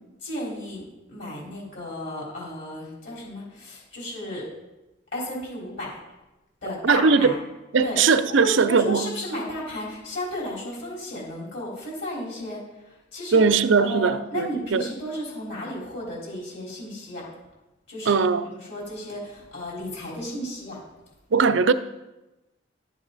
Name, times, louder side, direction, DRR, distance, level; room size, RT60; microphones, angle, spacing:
voice 1, 0.2-4.5 5.1-5.9 6.6-7.3 7.8-8.0 8.4-12.6 12.9-13.4 13.8-17.3 17.9-20.8, left 1 dB, 60° left, 4.0 m, -34 dB
voice 2, 6.8-7.3 7.7-9.1 13.3-14.9 18.1-18.5 21.3-21.7, right 5 dB, 80° right, 0.5 m, -20 dB
11.5 x 7.5 x 4.0 m
head